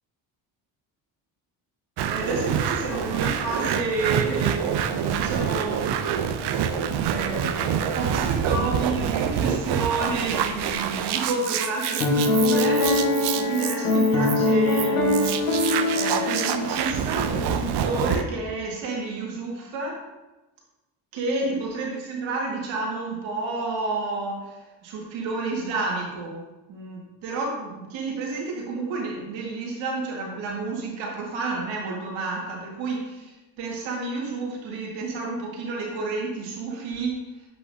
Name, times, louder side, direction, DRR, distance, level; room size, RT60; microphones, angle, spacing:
sound 1, 2.0-18.2, right 8 dB, 65° right, 0.7 m, -27 dB
voice 1, 2.1-6.0 7.0-12.9 13.4-15.4 15.9-20.0 21.1-26.4 26.7-37.2, right 3 dB, 85° right, -2 dB, 2.1 m, -30 dB
Piano, 12.0-17.3, left 2 dB, 85° left, 1.5 m, -23 dB
7.9 x 5.7 x 2.8 m, 1.0 s
supercardioid pair, 80°, 45 cm